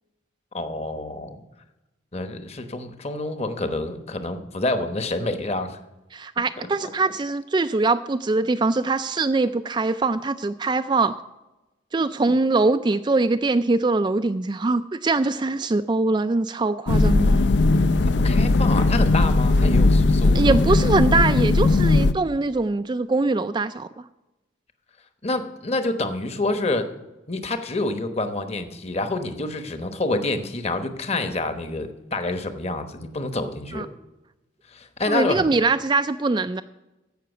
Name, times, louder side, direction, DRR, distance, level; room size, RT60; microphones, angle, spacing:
voice 1, 0.5-1.4 2.1-5.8 6.8-6.9 18.2-20.7 25.2-26.9 27.3-33.9 34.7-35.5, left 2 dB, 30° left, 8 dB, 1.1 m, -27 dB
voice 2, 6.1-11.1 11.9-17.4 20.3-23.9 33.7-33.9 35.1-36.6, right 3 dB, 25° right, 9 dB, 0.3 m, -22 dB
sound 1, 16.9-22.1, left 2 dB, 60° left, 0.5 m, -18 dB
15.5 x 5.9 x 8.0 m, 1.0 s
head